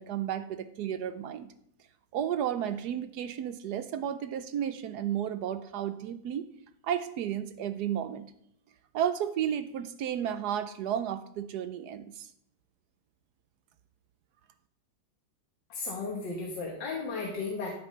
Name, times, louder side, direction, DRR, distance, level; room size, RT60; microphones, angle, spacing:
voice 1, 0.0-1.5 2.1-6.5 6.8-8.3 8.9-12.3, right 9 dB, 75° right, 12 dB, 1.1 m, -32 dB
voice 2, 15.7-17.7, left 4 dB, 85° left, 0 dB, 2.1 m, -34 dB
13.0 x 8.5 x 3.2 m, 0.72 s
omnidirectional pair, 1.9 m